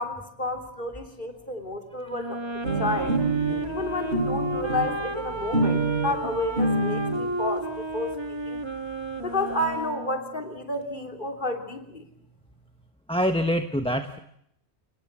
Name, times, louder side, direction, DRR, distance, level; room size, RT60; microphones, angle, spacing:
voice 1, 0.0-2.4 2.8-3.2 3.6-8.6 9.2-12.0, left 2 dB, 50° left, 5 dB, 3.4 m, -31 dB
Wind instrument woodwind instrument, 2.1-10.4, right 1 dB, 25° right, 1.7 m, -32 dB
sound 1, 2.6-7.2 8.1-8.2 8.4-8.5 8.8-8.9 9.0-9.7, right 2 dB, 60° right, 7.0 m, -28 dB
voice 2, 13.1-14.2, equal, 5° left, 8 dB, 1.0 m, -25 dB
29.0 x 19.5 x 7.5 m, 0.75 s
omnidirectional pair, 1.1 m